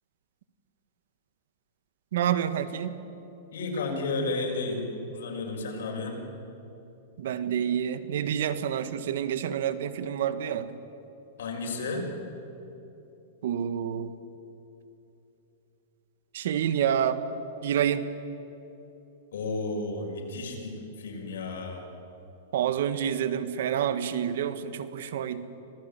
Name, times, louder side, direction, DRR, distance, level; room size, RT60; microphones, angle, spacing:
voice 1, 2.1-3.0 7.2-10.7 13.4-14.1 16.3-17.2 17.6-18.1 22.5-25.4, right 9 dB, 70° right, 12 dB, 1.5 m, -28 dB
voice 2, 3.5-6.2 11.4-12.1 19.3-21.8, left 3 dB, 85° left, 1 dB, 6.0 m, -32 dB
25.5 x 18.0 x 9.2 m, 3.0 s
supercardioid pair, 150°, 0 cm